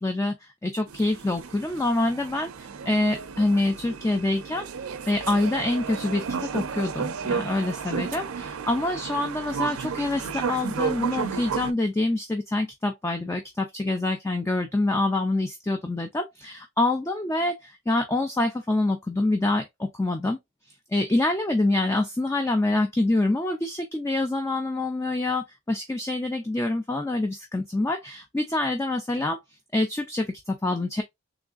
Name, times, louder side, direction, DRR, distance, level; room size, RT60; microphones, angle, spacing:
voice 1, 0.0-4.7 5.1-20.4 20.9-29.4 29.7-31.0, left 2 dB, 10° left, 0.3 m, -26 dB
sound 1, 0.9-11.7, right 6 dB, 75° right, 0.5 m, -33 dB
3.5 x 3.0 x 2.4 m
head